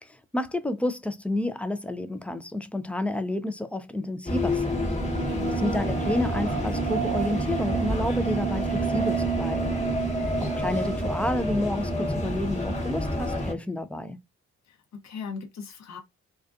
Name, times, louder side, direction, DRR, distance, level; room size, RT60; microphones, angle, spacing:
voice 1, 0.0-4.9 5.6-9.9 10.4-14.2, left 1 dB, 5° left, 0.4 m, -30 dB
sound 1, 4.3-13.5, right 1 dB, 20° left, 1.1 m, -27 dB
voice 2, 5.3-5.6 14.7-16.0, left 5 dB, 50° left, 0.9 m, -39 dB
2.3 x 2.2 x 2.4 m
hypercardioid pair, 40°, 34 cm